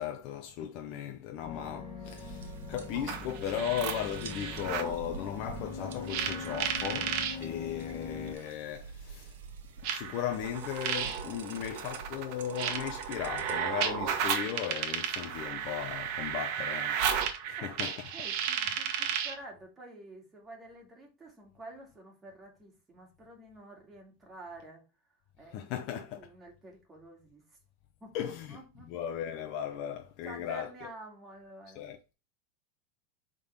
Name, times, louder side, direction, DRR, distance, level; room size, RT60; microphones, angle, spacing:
voice 1, 0.0-9.4 9.9-17.0 17.5-18.1 25.5-26.2 28.1-28.6 28.9-30.7 31.8-32.0, left 9 dB, 50° left, 0.7 m, -37 dB
sound 1, 1.4-8.3, left 5 dB, 10° left, 3.4 m, -42 dB
sound 2, 2.0-13.6, right 6 dB, 85° right, 1.1 m, -48 dB
sound 3, 2.9-5.0 6.1-7.4 8.5-8.6 9.8-19.4, right 8 dB, 50° right, 1.2 m, -34 dB
voice 2, 18.1-24.8 25.4-25.7 26.2-27.6 28.0-28.9 30.2-31.8, right 1 dB, 15° right, 2.3 m, -49 dB
5.6 x 3.8 x 5.1 m
supercardioid pair, 145°, 0 cm